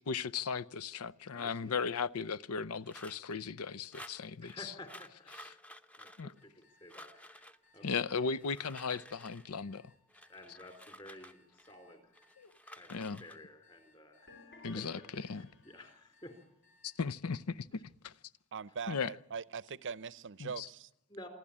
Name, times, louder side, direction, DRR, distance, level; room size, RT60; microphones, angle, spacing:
voice 1, 0.1-4.7 5.3-5.6 6.2-6.3 7.8-9.9 12.4-12.5 12.9-13.2 14.6-15.5 16.8-18.1 18.9-19.1 20.4-20.7, left 5 dB, 85° left, 0.7 m, -37 dB
voice 2, 1.3-1.8 4.4-5.3 6.0-6.5 6.8-8.0 10.3-12.0 12.7-14.3 14.7-14.9 15.3-16.4 21.1-21.3, left 1 dB, 25° left, 3.9 m, -52 dB
sound 1, 2.8-3.4 3.9-4.6 4.9-6.6 6.9-7.6 8.3-9.5 10.1-11.7 12.1-13.4, equal, 5° left, 0.8 m, -53 dB
sound 2, 6.3-17.0, left 3 dB, 40° left, 6.6 m, -68 dB
sound 3, 14.3-16.0, left 4 dB, 55° left, 4.1 m, -56 dB
voice 3, 18.5-20.9, right 6 dB, 60° right, 0.6 m, -41 dB
27.0 x 12.0 x 8.6 m
head